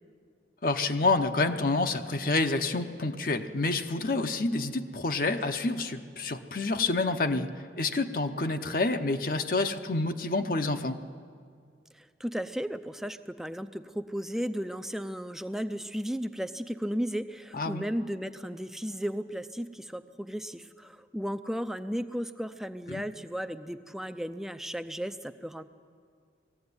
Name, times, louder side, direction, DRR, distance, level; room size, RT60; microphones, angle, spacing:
voice 1, 0.6-7.5 7.8-11.0 17.5-17.8 22.9-23.0, left 3 dB, 50° left, 6 dB, 0.7 m, -28 dB
voice 2, 11.9-25.6, equal, ahead, 10 dB, 0.5 m, -35 dB
20.0 x 15.0 x 9.7 m, 2.2 s
head